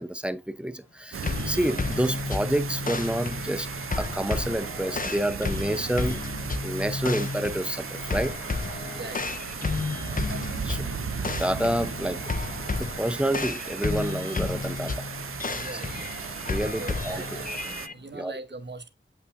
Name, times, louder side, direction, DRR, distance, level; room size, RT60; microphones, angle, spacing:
voice 1, 0.0-3.7 3.9-6.2 6.6-8.4 10.6-11.0 11.3-12.2 12.7-15.1 15.7-15.8 16.5-17.2 18.1-18.3, right 1 dB, 5° right, 0.7 m, -29 dB
sound 1, 0.8-18.3, left 4 dB, 75° left, 0.9 m, -49 dB
sound 2, 1.1-17.9, right 7 dB, 85° right, 0.4 m, -36 dB
sound 3, 1.2-17.9, left 4 dB, 40° left, 0.5 m, -32 dB
voice 2, 8.7-9.4 15.4-18.9, right 3 dB, 55° right, 0.9 m, -42 dB
7.5 x 5.7 x 2.5 m
wide cardioid pair, 50°, 21 cm